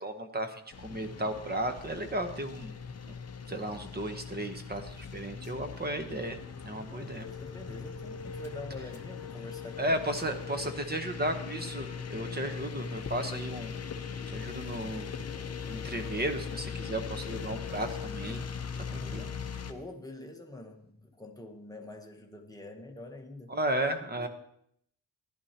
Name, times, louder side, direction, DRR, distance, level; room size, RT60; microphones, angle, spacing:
voice 1, 0.0-2.8 3.5-6.4 6.6-7.3 9.8-13.7 14.3-15.1 15.7-18.4 18.9-19.3 23.5-24.3, right 1 dB, 20° right, 7 dB, 0.9 m, -34 dB
sound 1, 0.7-19.7, left 6 dB, 35° left, 0.7 m, -40 dB
voice 2, 6.7-10.1 19.0-19.3 19.6-23.6 24.1-24.3, left 2 dB, 10° left, 2 dB, 0.9 m, -46 dB
14.0 x 11.5 x 2.9 m, 0.70 s
wide cardioid pair, 165°, 44 cm